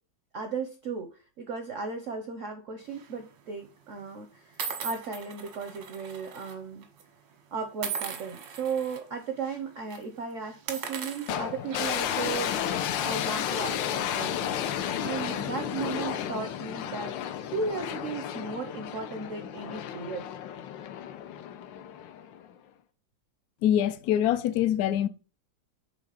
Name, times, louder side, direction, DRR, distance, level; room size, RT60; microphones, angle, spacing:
voice 1, 0.3-6.9 7.5-14.6 15.0-17.2 17.5-20.3, right 5 dB, 70° right, 0.7 m, -36 dB
sound 1, 2.9-3.2 4.0-4.1 4.6-6.5 6.8-7.0 7.8-9.0 9.4-9.6 9.9-10.0 10.5-12.1, right 6 dB, 90° right, 1.8 m, -38 dB
sound 2, 11.3-22.5, left 9 dB, 90° left, 1.3 m, -32 dB
voice 2, 23.6-25.1, left 11 dB, 70° left, 0.9 m, -24 dB
4.9 x 3.5 x 5.5 m
omnidirectional pair, 2.0 m